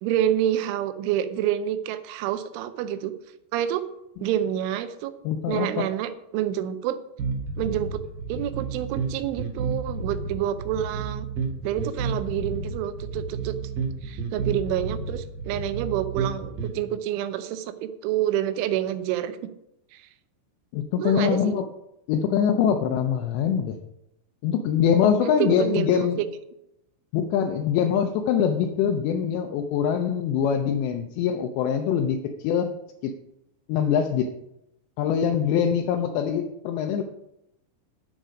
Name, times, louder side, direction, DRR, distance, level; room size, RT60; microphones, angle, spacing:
voice 1, 0.0-3.1 3.5-3.8 4.2-5.1 5.5-7.0 7.6-8.0 8.3-11.3 11.6-13.6 14.0-19.4 19.9-20.0 21.0-21.5 25.2-26.3, right 11 dB, 90° right, 12 dB, 3.2 m, -28 dB
voice 2, 5.3-5.8 20.7-21.6 22.1-23.8 24.4-26.2 27.1-32.7 33.0-33.1 33.7-34.3 35.0-37.0, left 8 dB, 80° left, 4 dB, 2.8 m, -23 dB
sound 1, 7.2-16.8, right 4 dB, 60° right, 2.7 m, -31 dB
10.5 x 8.0 x 5.1 m, 0.85 s
omnidirectional pair, 5.4 m